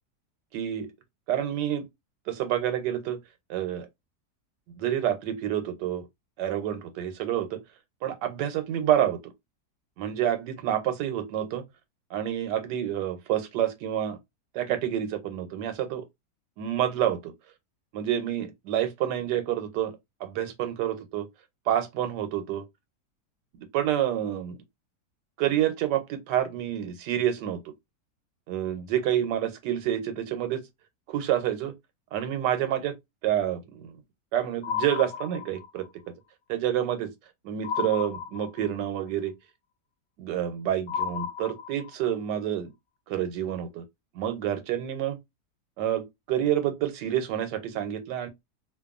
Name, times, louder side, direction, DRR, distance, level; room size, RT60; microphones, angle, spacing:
voice 1, 0.5-0.9 1.3-1.9 2.3-3.2 3.5-3.9 4.8-6.1 6.4-7.6 8.0-9.3 10.0-11.6 12.1-14.2 14.5-16.0 16.6-17.3 17.9-19.9 20.2-21.3 21.7-22.6 23.6-24.6 25.4-27.7 28.5-30.6 31.1-31.7 32.1-32.9 33.2-33.9 34.3-35.8 36.5-37.1 37.4-39.3 40.2-42.7 43.1-43.8 44.1-45.2 45.8-48.3, right 11 dB, 85° right, 1.3 m, -28 dB
sound 1, 34.6-35.9 37.6-38.9 40.9-42.1, left 8 dB, 85° left, 0.6 m, -33 dB
2.6 x 2.5 x 2.3 m
omnidirectional pair, 1.8 m